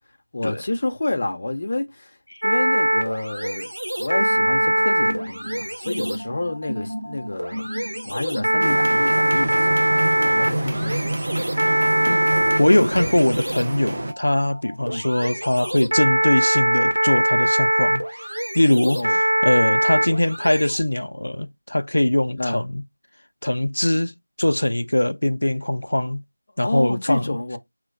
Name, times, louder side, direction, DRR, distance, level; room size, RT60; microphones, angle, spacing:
voice 1, 0.3-2.2 2.4-3.7 4.0-11.2 13.0-13.1 14.8-15.1 18.9-19.2 22.3-22.6 26.6-27.6, left 2 dB, 30° left, 0.6 m, -29 dB
sound 1, 2.4-20.8, right 1 dB, 85° right, 1.2 m, -22 dB
sound 2, 4.2-9.0, equal, 45° right, 1.6 m, -34 dB
sound 3, 8.6-14.1, right 1 dB, 25° right, 0.5 m, -27 dB
voice 2, 10.6-11.0 12.0-18.0 18.5-22.8 23.4-26.2 26.6-27.2, left 1 dB, 80° left, 0.4 m, -22 dB
4.1 x 3.0 x 2.5 m
figure-of-eight pair, 175°, 0 cm